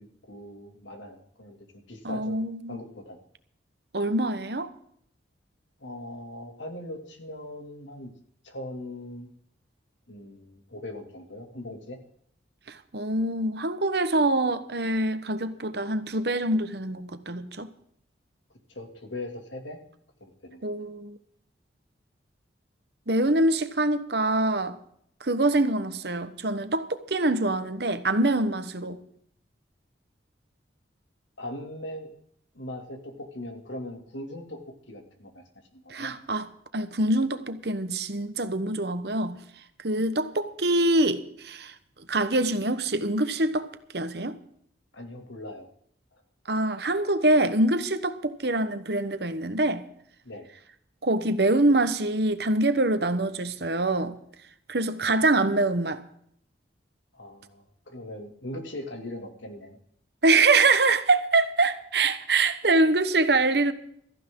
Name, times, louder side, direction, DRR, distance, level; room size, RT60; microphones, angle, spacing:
voice 1, 0.0-1.6 1.9-2.4 2.7-3.2 5.8-8.1 8.4-9.3 10.1-12.0 18.7-19.8 20.2-20.6 31.4-32.1 32.5-34.6 34.9-35.4 35.7-36.1 44.9-45.7 50.2-50.5 57.1-59.8, left 1 dB, 85° left, 2.7 m, -40 dB
voice 2, 2.0-2.8 3.9-4.7 12.7-17.7 20.6-21.2 23.1-24.8 25.2-29.0 35.9-36.5 36.7-39.4 39.8-41.7 42.1-43.7 43.9-44.4 46.5-49.8 51.0-54.2 54.7-56.0 60.2-63.7, right 2 dB, 60° right, 1.1 m, -24 dB
16.5 x 14.5 x 3.8 m
head